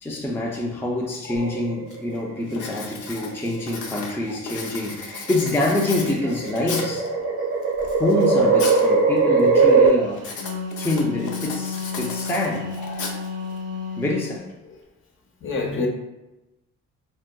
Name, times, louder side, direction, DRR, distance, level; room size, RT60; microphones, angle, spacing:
voice 1, 0.0-7.1 8.0-10.4 10.8-12.8 14.0-14.5, left 2 dB, 10° left, 0.4 m, -26 dB
sound 1, 1.3-2.1 3.3-3.7 4.6-9.9, right 4 dB, 85° right, 0.9 m, -20 dB
Writing, 1.4-1.5 1.9-2.2 2.5-7.1 7.6-8.9 9.2-9.6 10.2-13.6, left 4 dB, 75° left, 0.7 m, -35 dB
Wind instrument woodwind instrument, 10.1-14.3, left 4 dB, 55° right, 0.7 m, -32 dB
voice 2, 12.9-13.2 15.4-15.9, left 3 dB, 45° left, 0.7 m, -29 dB
3.9 x 2.1 x 2.3 m
cardioid pair, 90°, 30 cm